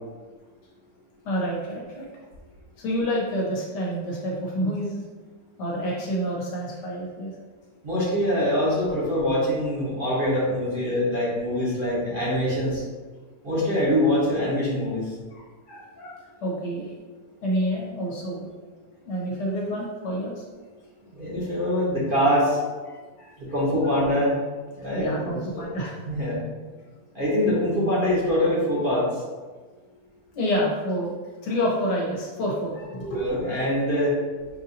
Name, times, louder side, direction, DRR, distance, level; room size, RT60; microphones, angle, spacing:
voice 1, 1.2-2.1 2.8-5.0 5.6-7.3 15.3-16.9 17.4-18.5 19.0-20.4 23.2-23.3 24.9-25.9 30.3-31.1 31.4-33.6, equal, 75° left, -4 dB, 1.6 m, -28 dB
voice 2, 7.8-12.8 13.4-15.0 21.1-22.6 23.4-24.4 24.7-25.6 26.0-26.4 27.1-29.1 33.1-34.2, left 1 dB, 35° right, -8 dB, 1.2 m, -24 dB
5.5 x 2.7 x 2.7 m, 1.3 s
omnidirectional pair, 1.8 m